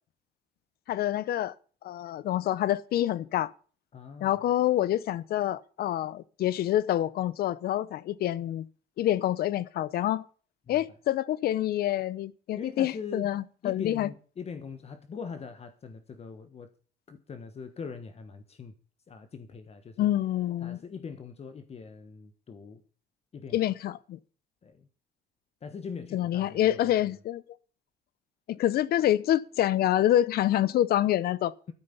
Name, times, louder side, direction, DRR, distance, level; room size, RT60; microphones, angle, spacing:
voice 1, 0.9-1.5 1.8-3.5 4.2-8.7 9.0-10.2 10.7-14.1 20.0-20.8 23.5-24.2 26.1-27.4 28.5-31.5, left 12 dB, 65° left, 0.9 m, -27 dB
voice 2, 3.9-4.4 10.7-10.8 12.5-13.3 13.6-16.7 17.1-18.8 19.1-20.1 20.6-22.8 23.3-23.7 24.6-24.9 25.6-26.9, left 5 dB, 35° left, 1.4 m, -42 dB
12.5 x 9.9 x 7.1 m
cardioid pair, 110°, 17 cm